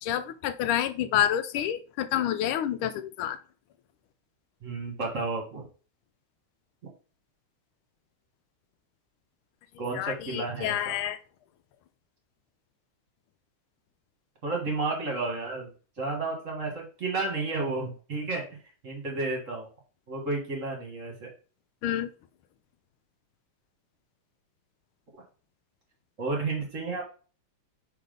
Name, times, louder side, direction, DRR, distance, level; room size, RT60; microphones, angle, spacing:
voice 1, 0.0-3.4 9.9-11.2 21.8-22.1, left 11 dB, 80° left, 1.4 m, -28 dB
voice 2, 4.6-5.6 9.8-11.0 14.4-15.7 16.0-18.4 18.8-19.7 20.1-21.3 26.2-27.0, right 3 dB, 40° right, 1.6 m, -32 dB
5.8 x 3.6 x 5.1 m
omnidirectional pair, 2.3 m